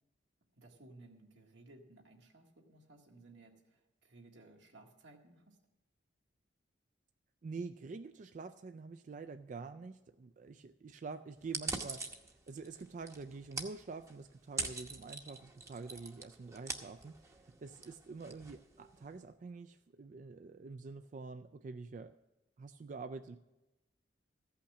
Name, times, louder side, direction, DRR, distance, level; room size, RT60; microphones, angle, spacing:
voice 1, 0.5-5.6, right 2 dB, 85° right, 1 dB, 1.8 m, -59 dB
voice 2, 7.4-12.2 12.5-22.2 22.6-23.4, right 4 dB, 45° right, 10 dB, 0.3 m, -47 dB
sound 1, 11.4-19.2, right 3 dB, 15° right, 0.8 m, -44 dB
14.5 x 5.8 x 7.2 m, 1.0 s
head